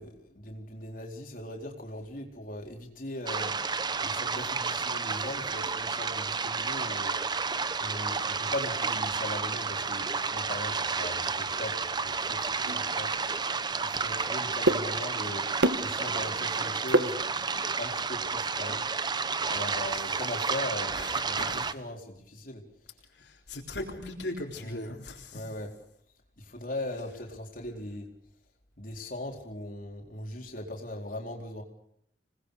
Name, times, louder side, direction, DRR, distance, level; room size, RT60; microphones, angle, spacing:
voice 1, 0.0-3.6 4.0-7.2 7.8-13.2 13.8-15.4 15.8-17.2 17.8-18.9 19.5-22.6 24.6-25.0 25.3-25.7 26.4-28.1 28.8-31.6, left 1 dB, 50° left, 1 dB, 4.3 m, -39 dB
sound 1, 3.3-21.7, right 5 dB, 25° right, 0.9 m, -31 dB
sound 2, 12.7-17.7, right 1 dB, 80° right, 1.8 m, -32 dB
voice 2, 20.9-21.7 23.2-25.4, left 2 dB, 75° left, 1 dB, 3.8 m, -39 dB
27.0 x 20.0 x 6.7 m, 0.71 s
head